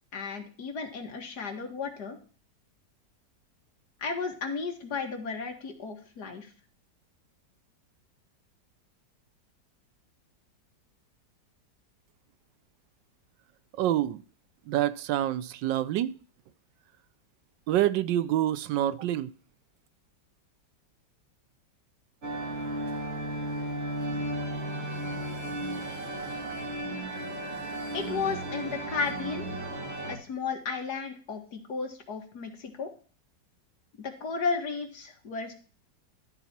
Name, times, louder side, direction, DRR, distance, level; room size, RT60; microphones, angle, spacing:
voice 1, 0.1-2.2 4.0-6.5 27.9-29.5 30.1-32.9 34.0-35.5, left 5 dB, 65° left, 2.0 m, -34 dB
voice 2, 13.8-14.2 14.7-16.1 17.7-19.3, right 12 dB, 80° right, 1.3 m, -27 dB
sound 1, 22.2-30.2, right 1 dB, 35° right, 2.0 m, -34 dB
12.5 x 4.1 x 5.8 m
omnidirectional pair, 1.9 m